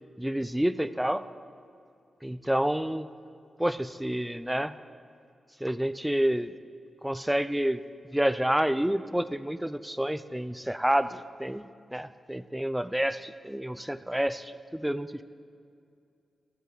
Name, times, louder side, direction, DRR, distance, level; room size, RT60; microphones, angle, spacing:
voice 1, 0.2-1.3 2.2-3.1 3.6-4.7 5.6-6.5 7.0-7.8 8.1-11.7 11.9-15.2, right 1 dB, 5° right, 13 dB, 0.4 m, -28 dB
18.0 x 12.5 x 4.0 m, 2.4 s
wide cardioid pair, 90°, 0 cm